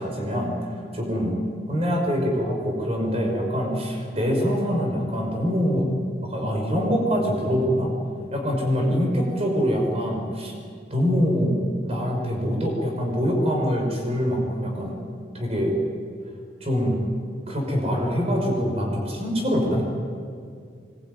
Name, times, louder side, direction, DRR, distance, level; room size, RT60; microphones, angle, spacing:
voice 1, 0.0-1.4 1.7-5.9 6.2-7.9 8.3-10.5 10.9-15.0 15.3-15.8 16.6-17.0 17.5-19.8, equal, 35° right, 1 dB, 5.5 m, -24 dB
24.0 x 21.0 x 9.4 m, 2.2 s
head